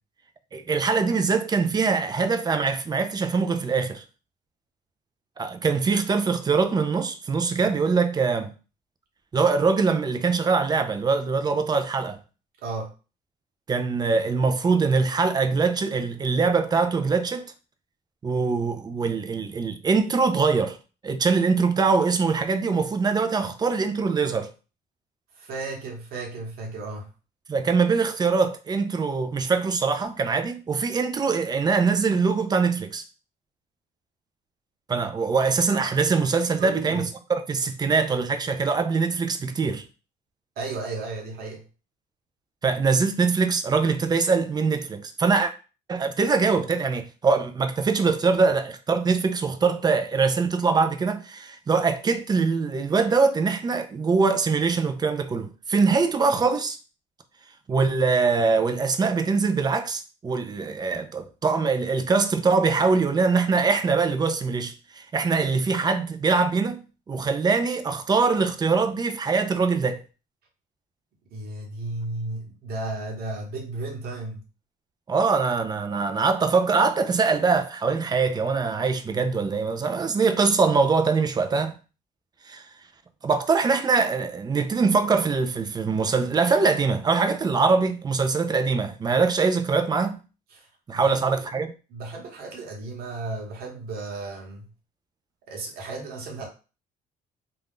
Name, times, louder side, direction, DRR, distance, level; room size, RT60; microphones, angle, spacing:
voice 1, 0.5-4.0 5.4-8.5 9.3-12.2 13.7-17.5 18.2-20.8 21.0-24.5 27.5-33.0 34.9-37.0 37.3-39.8 42.6-45.5 45.9-56.8 57.7-70.0 75.1-81.7 82.5-82.6 83.2-90.2 90.9-91.7, right 4 dB, 25° right, 0.4 m, -23 dB
voice 2, 12.6-12.9 25.3-27.1 36.6-37.1 40.6-41.6 71.3-74.4 90.5-91.5 91.9-94.7 95.5-96.5, right 3 dB, 65° right, 1.1 m, -34 dB
2.5 x 2.3 x 3.5 m
cardioid pair, 110°, 17 cm